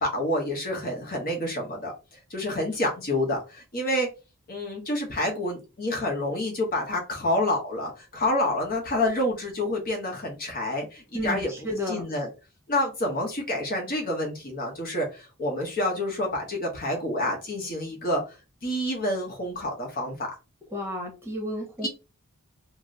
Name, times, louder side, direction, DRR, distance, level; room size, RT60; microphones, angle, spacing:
voice 1, 0.0-1.9 2.3-4.1 4.5-11.5 11.9-12.3 12.7-18.4 18.6-20.2 21.8-21.9, left 1 dB, 40° left, 0 dB, 0.9 m, -28 dB
voice 2, 11.1-12.1 20.7-21.9, left 1 dB, 10° right, 0 dB, 0.9 m, -32 dB
2.9 x 2.0 x 3.7 m, 0.31 s
head